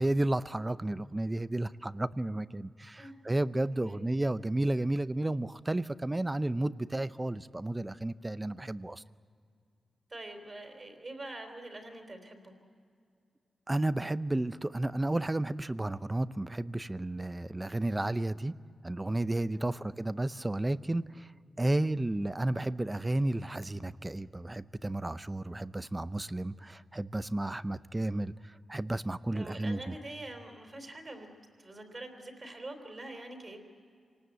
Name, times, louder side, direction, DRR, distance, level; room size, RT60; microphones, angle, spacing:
voice 1, 0.0-9.0 13.7-18.6 18.8-21.3 21.6-28.3 28.7-30.0, right 1 dB, 15° right, 15 dB, 0.6 m, -32 dB
voice 2, 3.6-4.1 10.1-12.5 19.5-19.8 29.3-31.3 31.6-33.6, right 2 dB, 35° right, 5 dB, 3.6 m, -45 dB
26.5 x 19.0 x 8.0 m, 2.3 s
cardioid pair, 95°, 0 cm